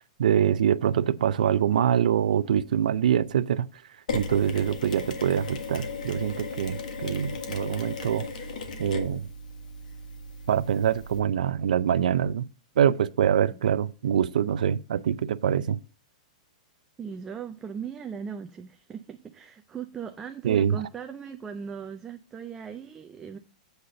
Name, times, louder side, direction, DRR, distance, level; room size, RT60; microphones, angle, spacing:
voice 1, 0.2-3.7 4.1-8.3 8.8-9.3 10.5-12.5 12.8-15.8 20.4-20.8, right 9 dB, 85° right, 0.4 m, -24 dB
Mechanisms, 4.1-11.2, left 4 dB, 80° left, 1.5 m, -36 dB
voice 2, 17.0-23.4, right 7 dB, 10° right, 0.3 m, -38 dB
8.0 x 4.1 x 6.4 m
supercardioid pair, 170°, 4 cm